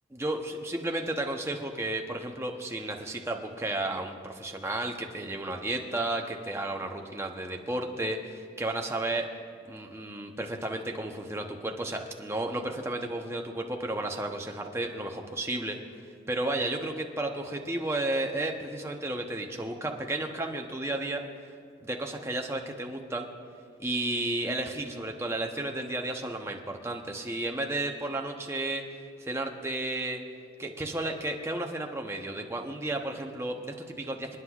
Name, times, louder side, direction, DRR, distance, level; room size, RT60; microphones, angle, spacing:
voice 1, 0.1-9.3 9.7-15.8 16.3-21.2 21.8-23.3 23.8-28.8 29.2-30.2 30.6-34.4, right 2 dB, 15° right, 2 dB, 0.8 m, -33 dB
27.5 x 9.6 x 2.4 m, 2.3 s
head